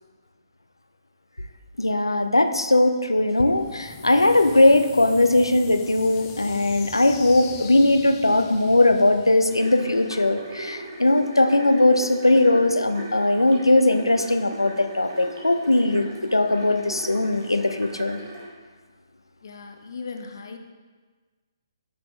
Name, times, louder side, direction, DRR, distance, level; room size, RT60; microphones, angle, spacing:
voice 1, 1.8-18.2, left 2 dB, 90° left, 8 dB, 0.7 m, -19 dB
sound 1, 3.4-10.3, left 6 dB, 25° left, 0.8 m, -42 dB
sound 2, 9.5-18.5, right 2 dB, 45° right, 2.4 m, -39 dB
voice 2, 19.4-20.6, left 4 dB, 60° left, 4 dB, 1.0 m, -37 dB
12.0 x 6.1 x 3.2 m, 1.4 s
figure-of-eight pair, 135°, 2 cm